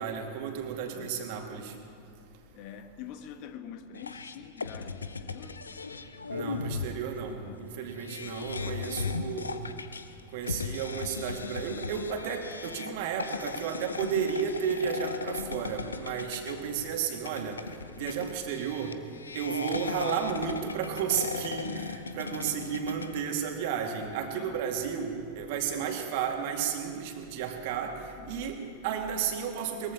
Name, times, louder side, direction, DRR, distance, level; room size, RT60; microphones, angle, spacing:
voice 1, 0.0-1.7 6.3-9.7 10.3-17.6 18.0-19.0 19.4-28.0 28.3-29.9, right 7 dB, 50° right, 3 dB, 2.0 m, -33 dB
voice 2, 0.9-1.2 2.5-5.6 7.2-7.7 24.2-24.6 28.2-28.5, left 8 dB, 45° left, 9 dB, 1.2 m, -46 dB
sound 1, 3.9-23.3, left 4 dB, 75° left, 0.7 m, -37 dB
22.0 x 22.0 x 2.9 m, 2.4 s
figure-of-eight pair, 90°, 0 cm